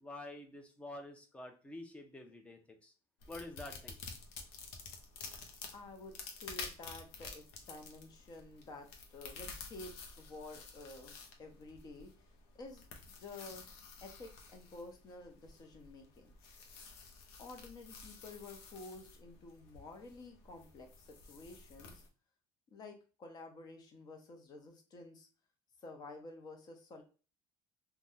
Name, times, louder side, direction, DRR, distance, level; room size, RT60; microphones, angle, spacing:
voice 1, 0.0-2.9 3.3-4.0, left 2 dB, 10° left, 5 dB, 0.6 m, -48 dB
sound 1, 3.2-22.1, left 4 dB, 80° left, 0.7 m, -51 dB
voice 2, 5.7-12.3 12.6-13.6 14.0-16.3 17.4-22.0 22.7-25.3 25.8-27.0, left 2 dB, 40° left, 4 dB, 0.8 m, -51 dB
3.4 x 2.3 x 2.6 m, 0.35 s
cardioid pair, 130°, 11 cm